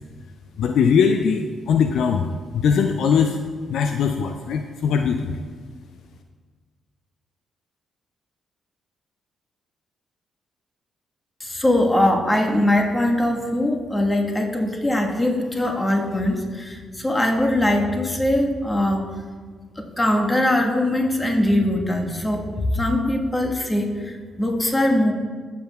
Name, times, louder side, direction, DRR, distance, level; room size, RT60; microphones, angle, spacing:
voice 1, 0.6-2.2 2.5-3.4 3.7-5.3, left 6 dB, 65° left, 6 dB, 0.4 m, -20 dB
voice 2, 11.4-19.1 19.8-25.1, left 1 dB, 20° left, 2 dB, 1.3 m, -21 dB
15.0 x 5.9 x 2.3 m, 1.5 s
hypercardioid pair, 40°, 0 cm